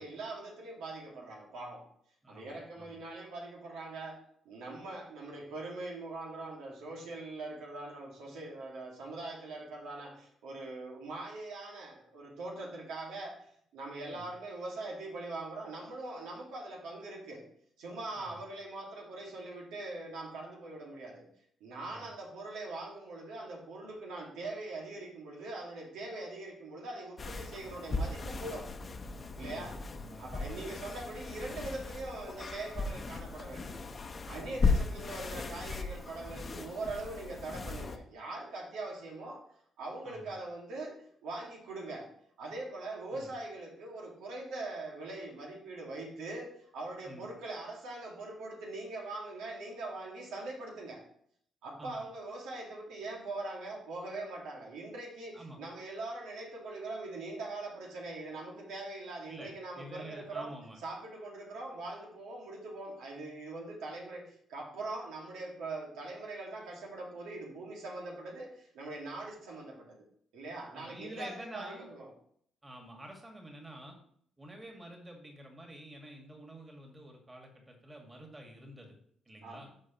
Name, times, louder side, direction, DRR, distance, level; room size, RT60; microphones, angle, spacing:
voice 1, 0.0-1.9 2.3-13.5 13.7-17.5 17.8-21.3 21.6-28.7 29.4-29.8 30.2-33.8 34.3-39.4 39.8-42.1 42.4-51.1 51.6-60.6 60.8-70.1 70.3-72.1 79.4-79.7, right 2 dB, 90° right, -1 dB, 2.2 m, -42 dB
voice 2, 2.2-3.0 14.1-14.3 18.2-18.3 21.9-22.1 29.4-30.6 34.4-34.8 40.0-40.3 43.1-43.3 47.0-47.3 51.8-52.0 55.3-55.6 59.3-60.8 70.7-71.9 72.6-74.0 74.4-78.9 79.3-79.7, right 1 dB, 20° right, 1 dB, 2.1 m, -49 dB
sound 1, 27.2-38.0, left 4 dB, 35° left, 0.9 m, -36 dB
13.0 x 4.8 x 3.1 m, 0.63 s
cardioid pair, 90°, 0 cm